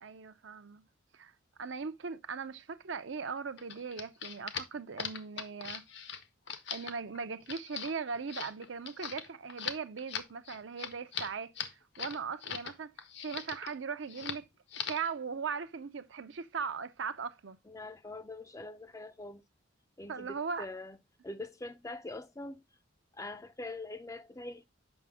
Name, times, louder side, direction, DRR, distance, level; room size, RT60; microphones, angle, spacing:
voice 1, 0.0-0.8 1.1-1.3 1.6-5.9 6.7-11.5 12.0-12.9 13.2-14.4 14.8-17.6 20.1-20.7, right 5 dB, 65° right, 0.6 m, -39 dB
sound 1, 3.6-12.7 13.0-13.7 14.1-14.4 14.7-15.1, left 7 dB, 60° left, 0.8 m, -40 dB
voice 2, 17.7-19.4 20.0-21.0 21.2-22.6 23.1-24.6, left 2 dB, 15° left, 0.4 m, -43 dB
7.2 x 5.7 x 3.5 m
head